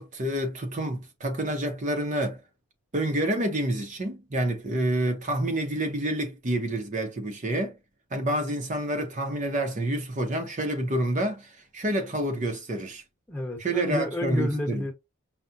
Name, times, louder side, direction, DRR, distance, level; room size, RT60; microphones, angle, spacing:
voice 1, 0.0-2.4 2.9-7.8 8.1-13.0 13.6-14.8, right 1 dB, 35° right, 0.7 m, -28 dB
voice 2, 13.3-14.9, left 1 dB, 10° left, 1.0 m, -30 dB
5.6 x 2.1 x 2.5 m
head